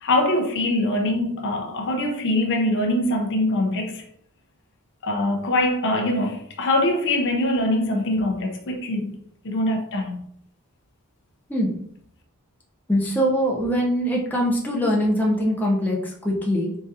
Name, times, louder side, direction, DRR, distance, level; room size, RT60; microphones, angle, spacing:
voice 1, 0.0-4.0 5.0-9.2 9.4-10.2, left 1 dB, 55° left, 0.6 m, -23 dB
voice 2, 12.9-16.7, equal, 10° left, 0.7 m, -22 dB
3.9 x 3.8 x 2.6 m
head